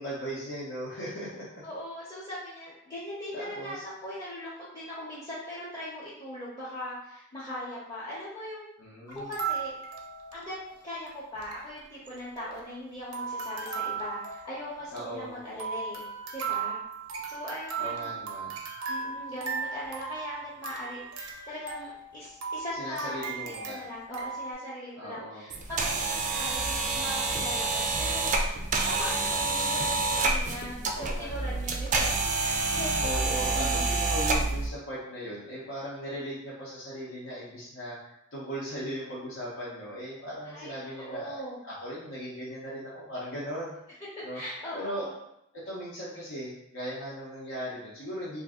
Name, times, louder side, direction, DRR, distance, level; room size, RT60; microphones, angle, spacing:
voice 1, 0.0-1.5 3.3-3.8 8.8-9.3 14.9-15.4 17.8-18.6 22.8-23.8 25.0-25.4 31.0-31.6 33.0-44.0 44.2-44.4 44.7-45.1 45.6-48.4, equal, 75° left, -9 dB, 0.8 m, -38 dB
voice 2, 1.6-8.7 9.1-9.7 10.3-10.6 10.8-16.1 16.3-16.8 17.3-18.2 18.9-21.0 21.5-28.3 28.8-33.8 40.4-40.7 41.0-41.6 44.3-45.1, left 1 dB, 20° left, -9 dB, 0.7 m, -40 dB
sound 1, 9.1-10.8 11.1-11.2 11.3-11.6 12.1-12.8 13.1-24.5, right 5 dB, 90° right, 0.6 m, -37 dB
sound 2, 25.5-34.7, right 3 dB, 35° right, 0.3 m, -28 dB
2.6 x 2.5 x 3.6 m, 0.79 s
head